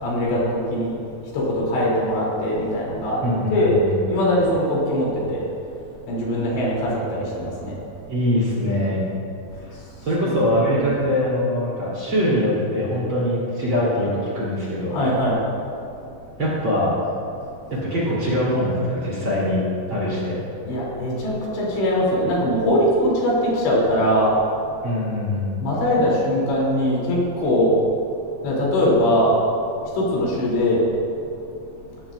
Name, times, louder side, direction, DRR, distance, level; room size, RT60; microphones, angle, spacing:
voice 1, 0.0-0.9 1.3-3.2 3.5-3.8 4.1-5.4 6.1-7.0 7.4-7.8 10.2-10.4 10.8-10.9 14.9-15.4 20.7-24.3 25.6-27.7 28.4-29.3 30.0-30.8, left 1 dB, 75° left, -5 dB, 5.4 m, -21 dB
voice 2, 3.2-4.0 8.1-9.1 10.0-15.0 16.4-16.9 17.7-19.6 19.9-20.4 24.8-25.6, left 1 dB, 30° right, -8 dB, 3.5 m, -22 dB
19.5 x 14.0 x 2.5 m, 2.6 s
omnidirectional pair, 5.2 m